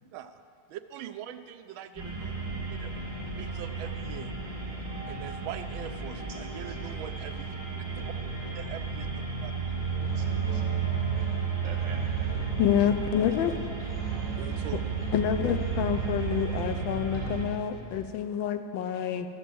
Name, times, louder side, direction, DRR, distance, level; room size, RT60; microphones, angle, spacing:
voice 1, 0.7-2.3 2.8-4.3 5.1-7.5 8.5-9.5 14.4-14.8, right 10 dB, 80° right, 9 dB, 1.4 m, -42 dB
sound 1, 1.9-17.4, right 5 dB, 10° right, 2.3 m, -33 dB
voice 2, 6.2-7.1 7.7-8.4 9.4-10.8 11.6-13.1, right 3 dB, 65° right, 0 dB, 1.9 m, -49 dB
Musical instrument, 10.0-17.6, right 10 dB, 5° left, 3.2 m, -37 dB
voice 3, 12.6-13.6 15.1-19.3, left 9 dB, 75° left, 8 dB, 1.3 m, -27 dB
sound 2, 13.1-18.1, equal, 25° left, 0.8 m, -46 dB
13.5 x 6.9 x 7.6 m, 2.4 s
omnidirectional pair, 2.2 m